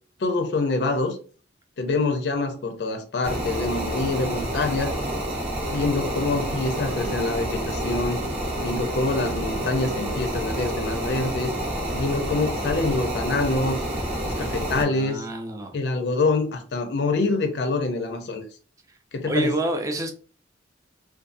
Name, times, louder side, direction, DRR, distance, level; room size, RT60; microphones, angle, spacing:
voice 1, 0.2-1.2 1.8-4.9 5.7-8.2 8.6-11.5 11.9-13.8 14.3-15.3 15.7-18.4 19.1-19.5, left 3 dB, 65° left, 0.4 m, -25 dB
sound 1, 3.2-14.8, right 1 dB, 35° right, 0.7 m, -28 dB
voice 2, 14.8-15.8 19.2-20.1, right 1 dB, 15° right, 0.3 m, -28 dB
2.5 x 2.3 x 2.5 m
head